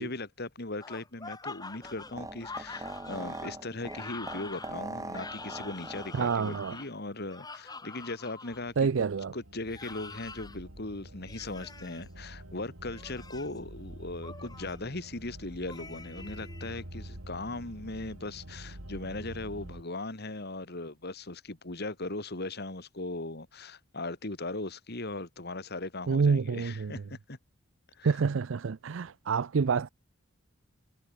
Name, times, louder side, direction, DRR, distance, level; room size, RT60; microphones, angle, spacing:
voice 1, 0.0-8.7 9.3-27.4 28.0-28.1, left 2 dB, 50° left, 2.3 m, -39 dB
sound 1, 0.8-8.6 9.6-10.6 11.3-12.0 12.8-13.6 14.2-14.8 15.7-16.8, left 3 dB, 20° left, 4.7 m, -45 dB
sound 2, 1.8-6.9, right 2 dB, 15° right, 7.4 m, -42 dB
voice 2, 6.1-6.8 8.8-9.3 26.1-26.9 28.0-29.9, right 5 dB, 65° right, 0.5 m, -27 dB
sound 3, 8.5-19.8, right 1 dB, 85° right, 4.8 m, -47 dB
head